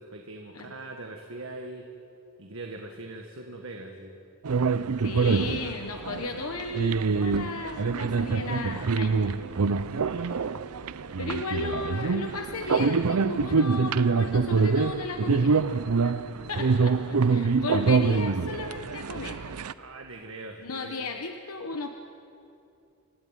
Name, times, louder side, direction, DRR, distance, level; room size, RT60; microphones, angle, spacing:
voice 1, 0.0-1.9 2.4-4.2 9.8-10.4 16.5-16.8 17.2-17.3 19.8-21.1, right 2 dB, 65° right, 2 dB, 1.6 m, -42 dB
sound 1, 4.4-19.7, right 4 dB, 85° right, 0.6 m, -25 dB
voice 2, 5.0-9.4 11.2-19.4 20.6-22.0, left 3 dB, 80° left, 5 dB, 1.0 m, -35 dB
28.0 x 14.0 x 9.1 m, 2.7 s
head